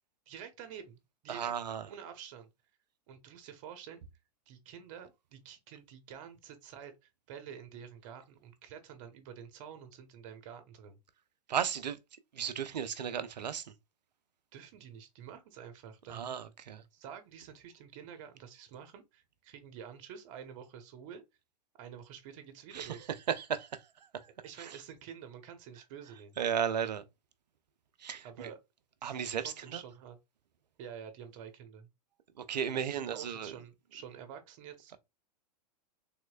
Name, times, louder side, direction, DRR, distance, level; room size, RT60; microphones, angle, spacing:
voice 1, 0.3-1.5 1.9-2.5 3.1-4.0 4.5-11.0 14.5-16.2 16.9-21.2 21.7-23.1 24.4-26.4 28.2-28.6 29.0-30.2 30.8-31.9 32.7-35.0, right 8 dB, 50° right, 1.1 m, -48 dB
voice 2, 1.3-1.8 11.5-12.0 12.3-13.7 16.1-16.8 22.7-22.9 23.3-23.8 24.1-24.3 24.6-24.8 26.4-27.0 28.0-28.5 29.0-29.8 32.4-33.5, right 8 dB, 85° right, 0.6 m, -35 dB
3.6 x 3.0 x 2.3 m
hypercardioid pair, 115°, 21 cm